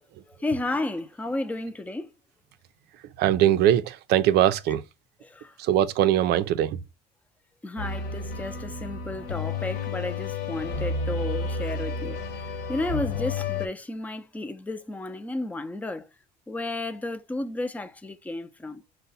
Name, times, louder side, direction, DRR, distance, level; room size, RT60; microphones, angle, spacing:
voice 1, 0.3-2.1 5.2-5.5 7.6-16.1 16.5-18.8, left 2 dB, 10° left, 0.5 m, -33 dB
voice 2, 3.2-4.8 5.6-6.8, right 11 dB, 65° right, 0.5 m, -21 dB
sound 1, 7.8-13.7, left 3 dB, 60° left, 1.2 m, -31 dB
5.4 x 2.2 x 4.0 m
cardioid pair, 110°, 18 cm